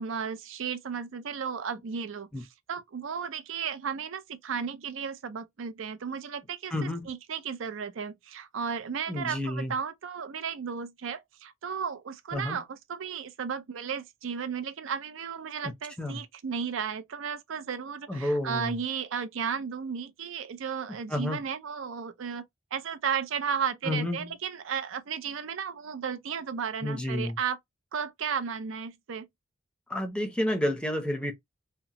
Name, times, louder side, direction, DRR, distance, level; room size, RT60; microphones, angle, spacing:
voice 1, 0.0-22.4 22.7-27.6 27.9-29.3, right 6 dB, 75° right, 0.5 m, -34 dB
voice 2, 6.7-7.1 9.1-9.7 12.3-12.6 16.0-16.2 18.1-18.7 21.1-21.4 23.9-24.3 26.8-27.3 29.9-31.3, left 1 dB, 5° left, 0.6 m, -30 dB
2.8 x 2.0 x 2.8 m
head